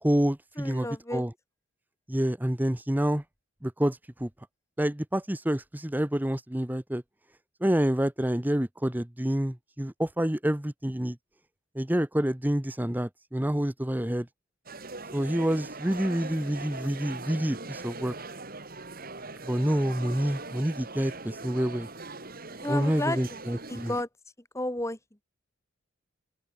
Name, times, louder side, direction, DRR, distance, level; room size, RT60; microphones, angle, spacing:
voice 1, 0.0-1.3 2.1-3.2 3.6-4.3 4.8-7.0 7.6-11.2 11.7-14.3 15.1-18.1 19.4-21.9 22.7-23.9, equal, 10° right, 0.8 m, -28 dB
voice 2, 0.6-1.2 22.6-23.2 23.7-24.1 24.5-25.0, left 1 dB, 15° left, 1.9 m, -31 dB
sound 1, 14.7-24.0, right 3 dB, 40° right, 3.3 m, -41 dB
open air
head